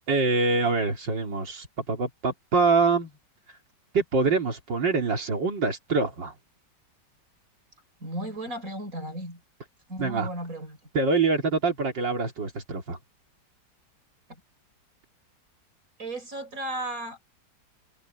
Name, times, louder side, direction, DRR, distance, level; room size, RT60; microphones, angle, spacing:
voice 1, 0.1-3.1 3.9-6.3 10.0-10.3 10.9-13.0, right 4 dB, 80° right, 3.6 m, -25 dB
voice 2, 8.0-9.4 9.9-10.8 14.3-14.4 16.0-17.3, right 1 dB, 45° right, 6.0 m, -35 dB
omnidirectional pair, 1.9 m